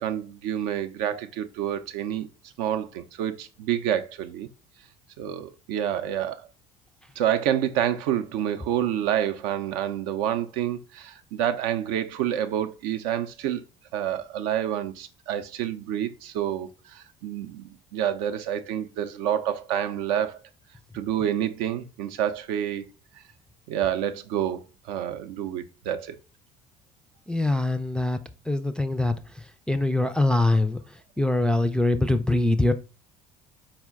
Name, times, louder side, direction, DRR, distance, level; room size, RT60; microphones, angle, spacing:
voice 1, 0.0-2.3 2.6-4.5 5.2-6.4 7.2-13.6 13.9-20.4 20.9-22.9 23.7-26.1, right 10 dB, 65° right, 0.5 m, -28 dB
voice 2, 27.3-28.2 28.5-29.2 29.7-30.8 31.2-32.7, left 2 dB, 5° left, 0.3 m, -23 dB
4.3 x 2.1 x 3.5 m
hypercardioid pair, 60°, 20 cm